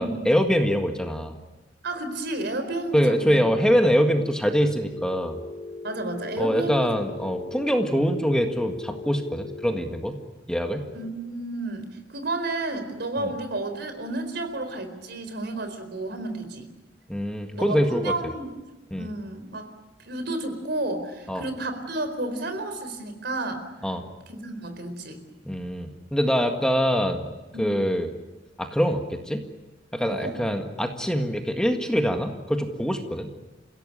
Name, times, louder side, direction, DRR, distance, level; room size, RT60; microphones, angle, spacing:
voice 1, 0.0-1.4 2.9-5.4 6.4-10.2 10.5-10.8 13.2-13.3 17.1-18.1 18.9-19.1 21.3-21.4 23.8-24.0 25.5-28.1 28.6-29.4 29.9-33.3, equal, 5° left, 5 dB, 1.8 m, -24 dB
voice 2, 1.8-3.4 5.8-6.9 10.9-16.7 17.5-18.5 19.0-19.7 20.0-23.7 24.3-25.2 27.5-27.8 30.0-30.4, right 2 dB, 60° right, 8 dB, 4.4 m, -31 dB
Telephone, 4.8-9.8, left 4 dB, 30° left, 7.1 m, -39 dB
29.0 x 17.0 x 9.9 m, 1.1 s
head